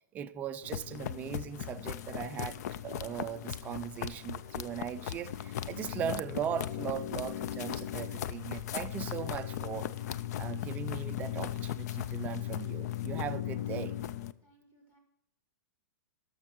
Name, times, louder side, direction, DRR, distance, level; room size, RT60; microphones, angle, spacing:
voice 1, 0.1-9.9 10.4-14.0, right 9 dB, 15° right, 0.3 m, -39 dB
sound 1, 0.6-14.3, left 11 dB, 60° left, 0.4 m, -37 dB
voice 2, 14.3-15.0, right 1 dB, 20° left, 2.3 m, -66 dB
12.5 x 6.6 x 4.5 m
hypercardioid pair, 155°, 10 cm